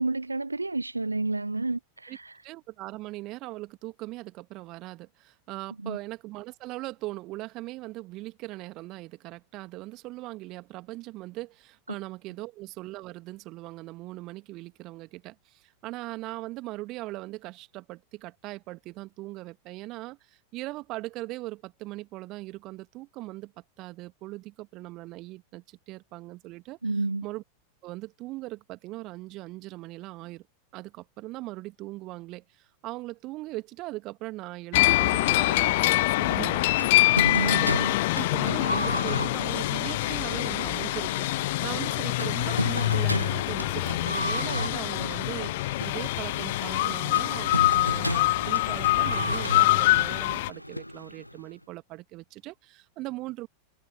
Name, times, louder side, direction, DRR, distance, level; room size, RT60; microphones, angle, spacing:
voice 1, 0.0-2.4 5.8-6.0 26.8-27.3 37.2-37.9, right 3 dB, 80° right, 0.4 m, -30 dB
voice 2, 2.4-23.5 23.8-26.8 27.2-27.4 27.8-30.5 30.7-37.1 37.4-53.5, right 19 dB, 40° right, 2.2 m, -39 dB
sound 1, 34.7-50.5, left 19 dB, 50° left, 0.7 m, -25 dB
sound 2, 36.8-51.5, equal, 90° left, 0.3 m, -34 dB
Skateboard, 40.2-47.2 47.5-48.0, left 3 dB, 10° left, 5.9 m, -57 dB
figure-of-eight pair, 90°, 0 cm